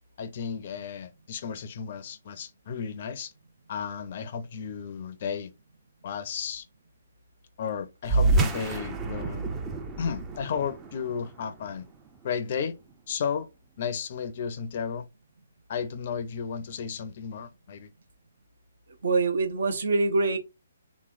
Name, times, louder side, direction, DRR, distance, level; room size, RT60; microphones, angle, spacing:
voice 1, 0.2-3.3 3.7-5.5 6.0-6.7 7.6-9.5 10.0-11.9 12.2-12.8 13.1-13.5 13.8-15.1 15.7-17.9, left 6 dB, 45° left, 0.5 m, -33 dB
sound 1, 8.0-12.9, right 3 dB, 15° right, 0.5 m, -29 dB
voice 2, 19.0-20.4, right 3 dB, 60° right, 0.8 m, -24 dB
3.5 x 3.1 x 2.5 m
figure-of-eight pair, 135°, 0 cm